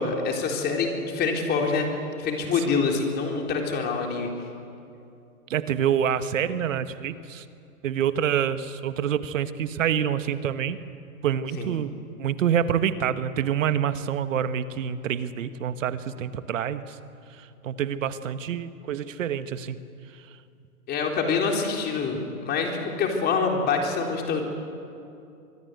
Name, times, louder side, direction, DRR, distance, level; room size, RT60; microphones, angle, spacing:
voice 1, 0.0-1.9 2.2-4.3 11.6-11.7 20.9-24.4, left 4 dB, 20° left, 2 dB, 3.8 m, -26 dB
voice 2, 5.5-7.4 7.8-10.8 11.2-17.0 17.4-19.8, right 9 dB, 60° right, 12 dB, 1.4 m, -27 dB
24.5 x 21.5 x 8.1 m, 2.5 s
hypercardioid pair, 130°, 44 cm